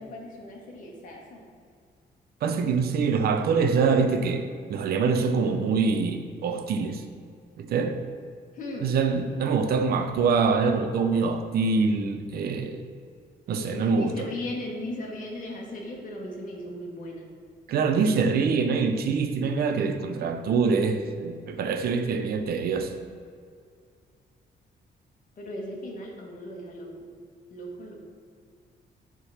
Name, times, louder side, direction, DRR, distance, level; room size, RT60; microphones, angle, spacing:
voice 1, 0.0-1.5 8.5-8.9 13.6-17.3 25.4-26.9 27.5-28.0, left 1 dB, 50° left, 1.7 m, -37 dB
voice 2, 2.4-7.0 7.6-8.0 8.8-12.8 13.5-14.3 17.7-22.9, right 5 dB, 65° right, 0.7 m, -25 dB
9.9 x 3.8 x 5.8 m
wide cardioid pair, 180°, 17 cm